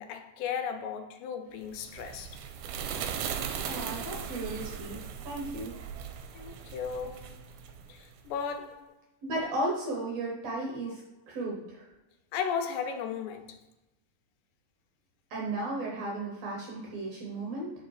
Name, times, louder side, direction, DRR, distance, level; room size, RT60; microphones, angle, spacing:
voice 1, 0.0-2.4 6.3-7.4 7.9-8.9 12.3-13.6, left 7 dB, 85° left, 2.3 m, -35 dB
sound 1, 1.7-8.3, right 8 dB, 80° right, 2.1 m, -38 dB
voice 2, 3.6-5.0 5.3-5.7 9.2-11.9 15.3-17.7, right 2 dB, 65° right, 1.8 m, -35 dB
4.9 x 4.8 x 4.7 m
omnidirectional pair, 3.9 m